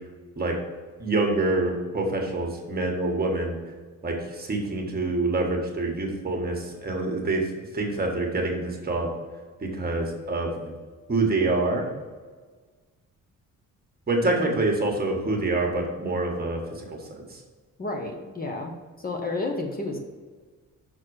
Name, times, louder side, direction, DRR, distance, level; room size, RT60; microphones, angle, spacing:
voice 1, 1.0-3.5 4.0-7.4 7.7-9.1 9.6-10.7 11.1-11.9 14.1-17.0 17.3-17.4, right 2 dB, 30° right, 1 dB, 1.5 m, -26 dB
voice 2, 17.8-20.0, left 2 dB, 30° left, 2 dB, 1.0 m, -31 dB
6.2 x 4.2 x 6.4 m, 1.4 s
cardioid pair, 120°, 31 cm